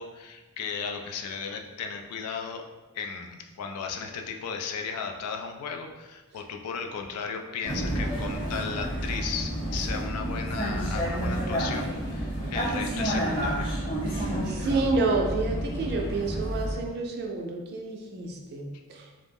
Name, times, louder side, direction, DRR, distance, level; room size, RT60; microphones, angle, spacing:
voice 1, 0.0-2.6 2.9-13.7 18.7-18.8, left 6 dB, 75° left, 4 dB, 0.3 m, -35 dB
Vehicle, 7.6-16.8, right 1 dB, 20° left, 0.8 m, -30 dB
voice 2, 14.1-19.3, right 3 dB, 45° right, 1 dB, 0.4 m, -29 dB
2.3 x 2.1 x 3.4 m, 1.2 s
head